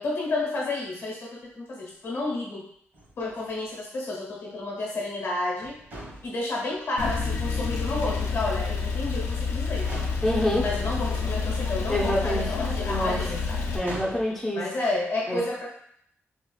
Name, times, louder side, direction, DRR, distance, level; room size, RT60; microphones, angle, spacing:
voice 1, 0.0-2.6 3.2-5.8 6.2-9.9 10.5-13.7 14.5-15.7, left 2 dB, 65° left, -2 dB, 1.1 m, -31 dB
sound 1, 2.9-3.8 5.6-6.9 7.9-8.7 9.3-9.4 9.8-10.6 11.8-12.3 13.8-14.4, right 1 dB, 55° right, 1.4 m, -42 dB
Male speech man speaking / Car / Idling, 7.0-13.8, left 4 dB, 85° left, 0.4 m, -28 dB
voice 2, 10.2-10.7 11.9-13.2 13.7-14.7 15.3-15.4, left 1 dB, 5° left, -5 dB, 0.6 m, -27 dB
4.3 x 2.4 x 2.4 m, 0.66 s
wide cardioid pair, 135°, 5 cm